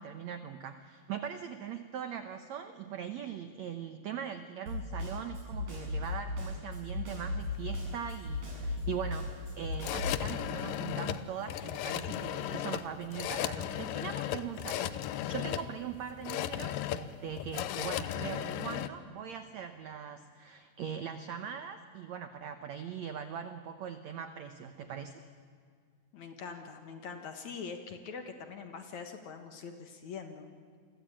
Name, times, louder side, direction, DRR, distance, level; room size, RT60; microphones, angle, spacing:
voice 1, 0.0-25.2, right 8 dB, 80° right, 9 dB, 1.6 m, -41 dB
Snare drum, 4.7-10.2, left 2 dB, 55° right, 8.9 m, -36 dB
sound 1, 7.5-18.9, left 12 dB, 75° left, 2.3 m, -36 dB
voice 2, 26.1-30.5, left 5 dB, 55° left, 6 dB, 2.3 m, -43 dB
29.0 x 23.0 x 8.8 m, 2.1 s
omnidirectional pair, 4.7 m